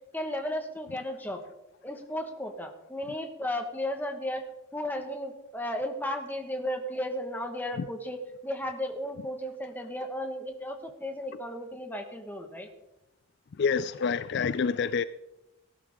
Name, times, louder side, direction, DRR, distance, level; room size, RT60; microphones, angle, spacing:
voice 1, 0.1-1.4 1.8-4.4 4.7-8.2 8.4-12.7, left 1 dB, 10° left, 1.5 m, -34 dB
voice 2, 13.6-15.0, left 5 dB, 50° left, 0.3 m, -27 dB
18.0 x 12.0 x 3.7 m
head